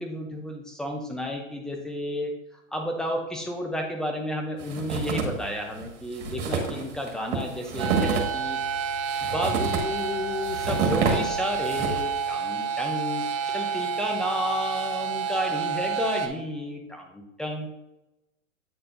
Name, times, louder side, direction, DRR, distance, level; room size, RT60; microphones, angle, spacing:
voice 1, 0.0-8.6 9.2-17.7, left 1 dB, ahead, 2 dB, 0.7 m, -32 dB
sound 1, 4.6-5.5 5.8-5.9 6.1-12.2, right 5 dB, 60° right, 1.9 m, -28 dB
sound 2, 7.8-16.3, right 6 dB, 40° right, 0.8 m, -29 dB
8.9 x 4.2 x 2.6 m, 0.92 s
hypercardioid pair, 120°, 40 cm